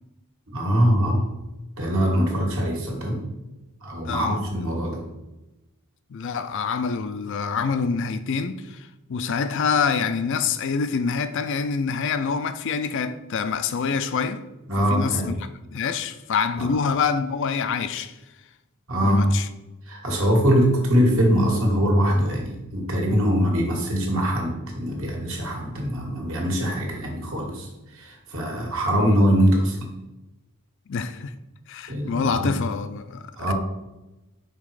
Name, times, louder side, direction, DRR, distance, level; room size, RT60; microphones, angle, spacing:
voice 1, 0.5-1.3 1.8-3.3 3.8-5.1 14.7-15.4 16.6-16.7 18.9-19.3 19.9-29.8 31.9-32.5 33.4-33.5, equal, 65° right, 1.7 m, -22 dB
voice 2, 4.0-4.4 6.1-14.4 14.9-15.3 15.7-18.2 19.0-19.5 29.0-29.2 30.9-31.4 31.7-33.5, left 5 dB, 55° left, 0.4 m, -26 dB
5.8 x 4.2 x 4.8 m
head